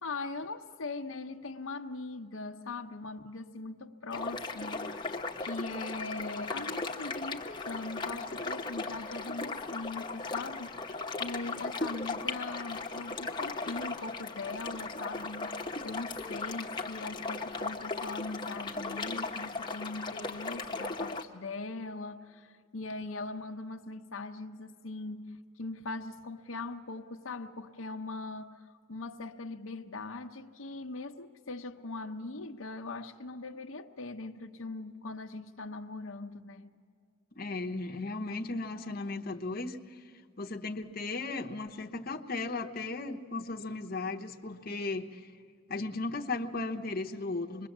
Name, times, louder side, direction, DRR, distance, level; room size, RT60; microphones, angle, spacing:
voice 1, 0.0-5.1 5.4-10.8 11.2-36.7, left 3 dB, 80° left, 0.8 m, -41 dB
sound 1, 4.1-21.2, left 3 dB, 20° left, 1.0 m, -37 dB
voice 2, 37.4-39.8 40.4-45.2 45.7-47.7, left 3 dB, 45° left, 0.9 m, -36 dB
26.0 x 21.5 x 7.3 m
head